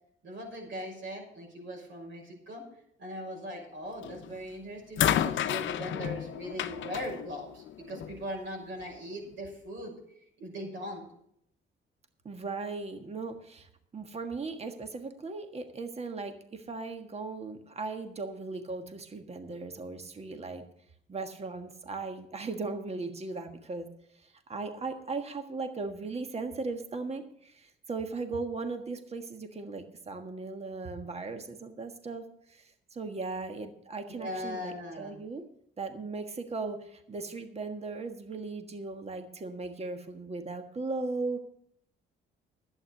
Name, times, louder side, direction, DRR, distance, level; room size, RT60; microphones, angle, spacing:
voice 1, 0.2-2.6 3.0-9.9 10.4-11.0 34.1-35.2, equal, 70° right, 0 dB, 6.0 m, -40 dB
sound 1, 4.0-4.4 5.0-8.2 9.2-9.3, left 10 dB, 70° left, 0.8 m, -31 dB
voice 2, 12.2-20.6 21.1-23.9 24.5-35.4 35.8-41.4, right 3 dB, 30° right, 6 dB, 1.5 m, -37 dB
11.5 x 8.9 x 6.6 m, 0.70 s
cardioid pair, 90°, 20 cm